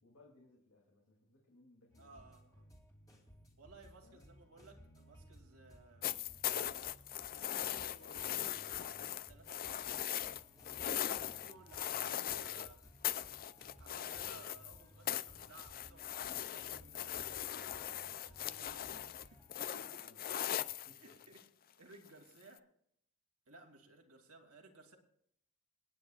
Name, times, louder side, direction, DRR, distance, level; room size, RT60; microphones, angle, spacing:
voice 1, 0.0-2.3 4.0-4.2 7.8-8.1 20.0-21.2, left 2 dB, 80° left, -1 dB, 2.8 m, -64 dB
sound 1, 1.9-19.6, equal, 15° left, 2.7 m, -60 dB
voice 2, 2.0-2.7 3.6-6.9 7.9-8.6 9.3-9.9 10.6-12.8 13.8-17.3 18.4-20.0 20.9-21.4 21.8-22.7 23.5-25.0, right 3 dB, 85° right, 3 dB, 2.5 m, -59 dB
sound 2, 6.0-12.7 13.0-14.8 15.1-21.4 22.6-22.7, left 11 dB, 40° left, 0.4 m, -40 dB
26.5 x 9.6 x 2.4 m, 0.68 s
head